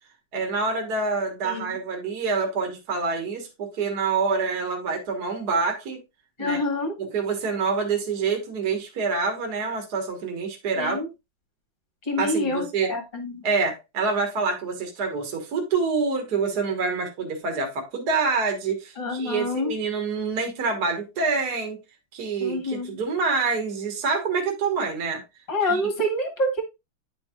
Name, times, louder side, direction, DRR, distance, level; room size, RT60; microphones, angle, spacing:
voice 1, 0.3-6.0 6.4-6.6 7.0-11.0 12.2-12.9 13.4-21.8 22.1-25.2 25.7-25.8, right 4 dB, 50° right, 1.9 m, -26 dB
voice 2, 6.4-6.9 10.7-11.1 12.0-13.4 19.0-19.7 22.4-23.0 25.5-26.6, left 1 dB, 25° left, 1.6 m, -27 dB
10.5 x 4.5 x 2.4 m
omnidirectional pair, 2.2 m